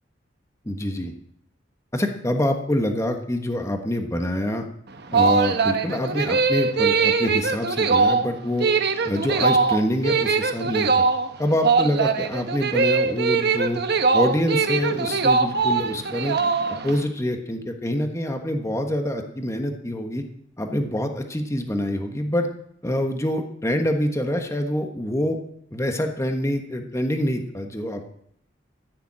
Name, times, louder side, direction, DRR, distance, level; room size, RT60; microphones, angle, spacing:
voice 1, 0.6-1.1 1.9-4.6 5.1-8.7 9.0-11.0 11.4-13.8 14.1-16.4 16.8-20.2 20.6-22.5 22.8-25.4 25.7-28.0, left 1 dB, 15° left, 4 dB, 1.3 m, -25 dB
sound 1, 4.9-17.0, right 4 dB, 55° right, 1.1 m, -21 dB
15.0 x 7.0 x 8.7 m, 0.71 s
head